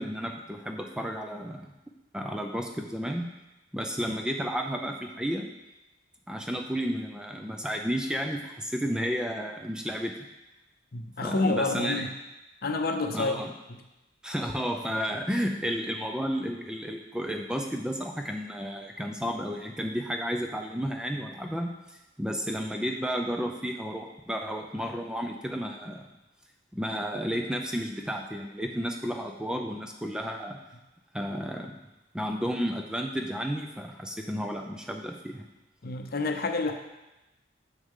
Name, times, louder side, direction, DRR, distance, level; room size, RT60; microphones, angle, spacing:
voice 1, 0.0-1.6 2.1-3.3 3.7-5.5 6.3-10.2 11.2-12.1 13.1-13.5 14.2-26.0 26.7-30.6 31.1-31.7 32.1-35.4, equal, 5° right, 3 dB, 0.4 m, -32 dB
voice 2, 10.9-12.1 12.6-13.4 13.7-13.8 35.8-36.7, left 3 dB, 55° left, 5 dB, 0.7 m, -29 dB
6.6 x 6.5 x 3.6 m, 0.99 s
head